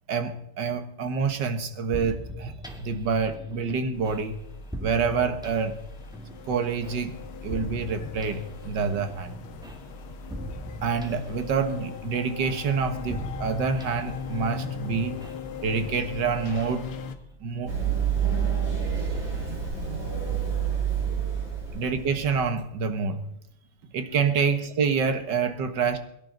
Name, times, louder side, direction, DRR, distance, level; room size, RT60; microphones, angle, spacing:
voice 1, 0.1-2.5 2.8-4.4 4.8-5.8 6.5-9.4 10.8-15.2 15.6-16.9 17.4-17.7 21.7-23.2 23.9-26.0, right 5 dB, 55° right, 9 dB, 1.9 m, -27 dB
sound 1, 1.9-17.6, equal, ahead, 1.3 m, -41 dB
sound 2, 3.9-17.1, left 6 dB, 80° left, 2.1 m, -40 dB
Run, 17.7-22.4, right 7 dB, 30° right, 4.9 m, -28 dB
22.0 x 10.5 x 3.9 m, 0.79 s
omnidirectional pair, 2.4 m